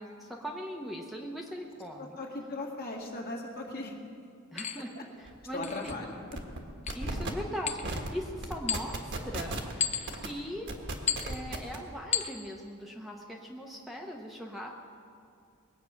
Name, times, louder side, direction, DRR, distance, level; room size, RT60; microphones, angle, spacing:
voice 1, 0.0-2.2 4.5-6.0 6.9-9.9 10.2-10.7 11.0-14.7, equal, ahead, -1 dB, 0.9 m, -40 dB
voice 2, 2.0-3.9 5.0-5.1 5.5-6.2, left 2 dB, 45° left, 0 dB, 2.1 m, -38 dB
sound 1, 3.0-3.1 4.6-4.8 5.6-6.0 6.9-7.0 7.7-8.1 8.7-9.1 9.8-10.3 11.1-11.4 12.1-12.4, left 8 dB, 30° left, 0.7 m, -33 dB
sound 2, 5.3-5.4 5.7-5.9 6.3-6.6 6.9-7.3 7.8-8.1 8.4-9.7 10.1-10.3 10.7-11.8, right 2 dB, 55° right, 1.5 m, -35 dB
21.5 x 8.4 x 5.9 m, 2.3 s
head